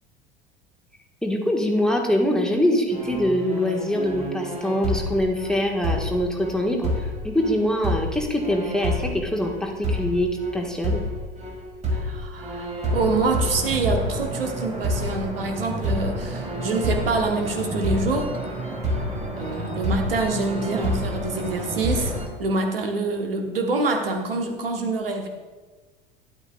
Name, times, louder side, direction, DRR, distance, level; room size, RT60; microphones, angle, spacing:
voice 1, 1.2-11.0, left 1 dB, ahead, 0 dB, 1.4 m, -24 dB
sound 1, 2.9-22.3, equal, 25° right, 2.2 m, -29 dB
voice 2, 11.9-18.3 19.4-22.1 22.4-25.3, right 3 dB, 75° right, 4 dB, 1.1 m, -26 dB
12.5 x 10.5 x 2.3 m, 1.3 s
figure-of-eight pair, 70°, 29 cm